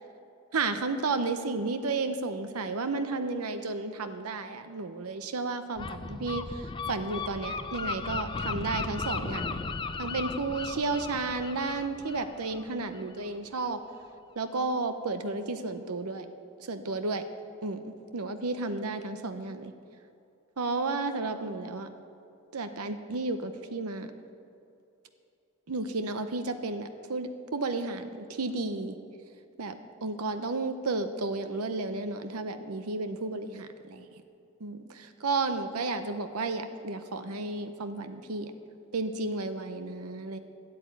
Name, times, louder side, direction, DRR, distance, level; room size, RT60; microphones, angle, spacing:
voice 1, 0.5-9.6 10.0-13.8 14.4-16.3 16.6-17.2 17.6-19.7 20.6-21.9 22.5-24.1 25.7-29.0 29.6-34.0 34.6-38.5 38.9-40.4, right 3 dB, 85° right, 9 dB, 0.7 m, -32 dB
Gull seagull, 5.8-13.3, left 4 dB, 20° left, 0.4 m, -36 dB
12.5 x 8.6 x 9.3 m, 2.7 s
head